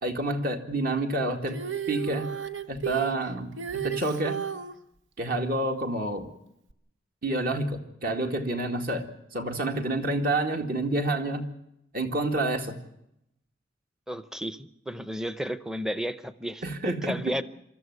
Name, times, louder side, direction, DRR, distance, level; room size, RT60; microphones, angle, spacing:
voice 1, 0.0-1.6 1.9-2.3 2.7-4.4 5.2-6.3 7.2-9.1 9.3-11.5 11.9-12.8 16.6-17.2, right 2 dB, 50° right, 5 dB, 2.1 m, -28 dB
Female singing, 1.5-4.7 6.7-6.8, right 9 dB, 75° right, 1.0 m, -33 dB
voice 2, 14.1-17.4, equal, 5° right, 13 dB, 0.7 m, -33 dB
24.5 x 13.5 x 9.5 m, 0.82 s
head